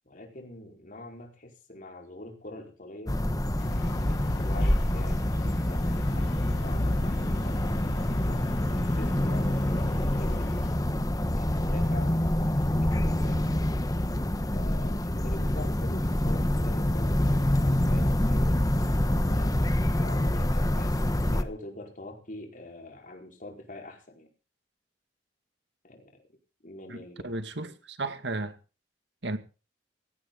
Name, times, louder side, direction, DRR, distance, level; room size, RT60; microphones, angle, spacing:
voice 1, 0.1-3.2 4.1-10.6 11.4-13.5 14.5-18.6 19.2-19.6 19.9-24.3 25.8-26.2 26.6-27.3, left 2 dB, 50° left, 4.6 m, -44 dB
sound 1, 3.1-21.4, left 1 dB, 20° left, 1.2 m, -26 dB
sound 2, 3.6-10.8, left 2 dB, 65° left, 0.9 m, -37 dB
voice 2, 26.9-28.6 29.2-29.4, right 2 dB, 70° right, 2.0 m, -34 dB
17.5 x 16.0 x 3.9 m
head